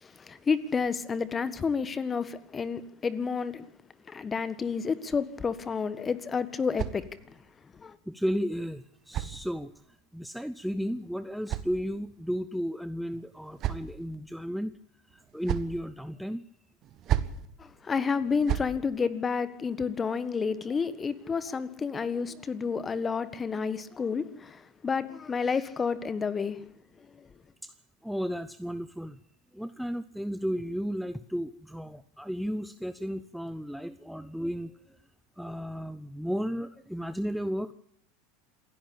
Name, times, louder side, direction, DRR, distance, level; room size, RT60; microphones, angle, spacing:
voice 1, 0.0-3.7 4.1-7.4 7.7-8.0 17.6-26.6 27.1-27.3, left 5 dB, 25° left, 1.6 m, -30 dB
sound 1, 5.9-7.5 8.5-10.0 10.9-12.3 13.1-14.2 15.1-15.8 16.8-17.5 18.2-18.8, right 11 dB, 40° right, 1.5 m, -35 dB
voice 2, 8.1-9.7 10.1-14.7 15.1-16.4 27.6-27.7 28.0-29.2 29.5-35.0 35.4-37.7, equal, ahead, 0.7 m, -34 dB
27.5 x 11.0 x 8.7 m
figure-of-eight pair, 80°, 0 cm